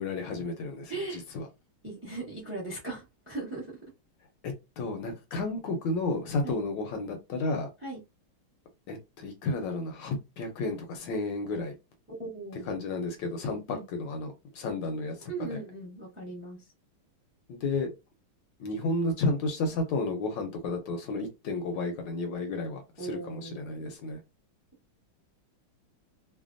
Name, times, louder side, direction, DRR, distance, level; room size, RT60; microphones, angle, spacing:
voice 1, 0.0-1.5 4.4-7.7 8.9-11.7 12.6-15.2 15.5-15.6 17.5-17.9 18.6-24.2, left 2 dB, 75° left, 1.2 m, -32 dB
voice 2, 0.9-1.2 1.8-3.7 6.4-6.6 7.8-8.0 12.1-12.7 13.7-13.9 15.2-16.7 23.0-23.9, right 3 dB, 15° right, 0.5 m, -38 dB
3.2 x 2.1 x 2.5 m
omnidirectional pair, 2.2 m